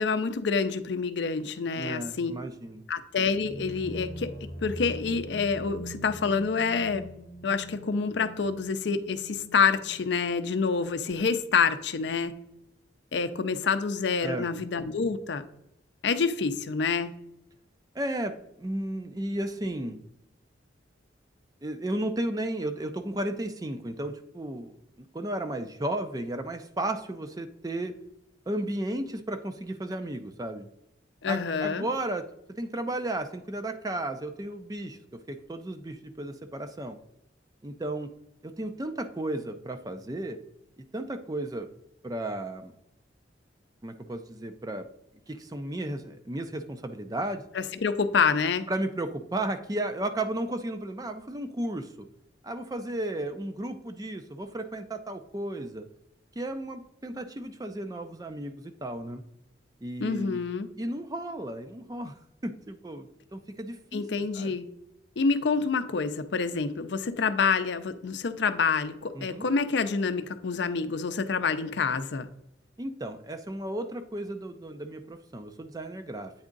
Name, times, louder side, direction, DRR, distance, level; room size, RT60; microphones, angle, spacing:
voice 1, 0.0-2.3 2.9-4.3 4.6-7.0 7.4-12.3 13.1-15.4 16.0-17.1 31.2-31.9 47.5-48.7 60.0-60.7 63.9-64.7 65.2-72.3, left 5 dB, 70° left, 10 dB, 0.5 m, -27 dB
voice 2, 1.8-2.8 14.2-14.5 17.9-20.0 21.6-28.0 28.5-30.7 31.3-37.0 37.6-38.1 38.4-40.4 40.9-41.7 42.0-42.7 43.8-44.9 45.3-47.4 48.7-52.1 52.4-55.9 56.4-59.2 59.8-60.4 60.8-62.2 62.4-64.0 64.3-64.5 69.1-69.5 72.8-76.3, right 1 dB, 20° right, 8 dB, 0.4 m, -34 dB
sound 1, 3.4-11.1, equal, 50° left, 1.0 m, -43 dB
8.6 x 3.6 x 3.8 m, 0.82 s
head